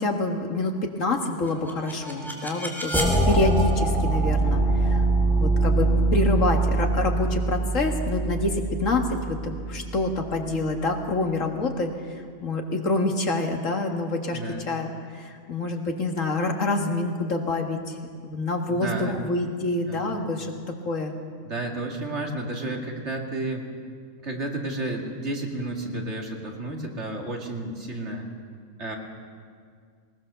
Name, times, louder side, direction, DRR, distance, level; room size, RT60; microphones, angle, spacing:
voice 1, 0.0-5.0 5.4-11.9 12.4-14.4 14.7-17.9 18.2-20.5 20.9-21.1, left 2 dB, 75° left, 3 dB, 2.2 m, -27 dB
sound 1, 1.5-10.4, right 2 dB, ahead, 3.3 m, -24 dB
voice 2, 14.3-14.6 18.7-19.2 19.9-20.2 21.4-23.7 24.2-28.3 28.8-29.0, right 2 dB, 60° right, 1 dB, 2.5 m, -32 dB
20.0 x 20.0 x 6.8 m, 2.1 s
omnidirectional pair, 1.3 m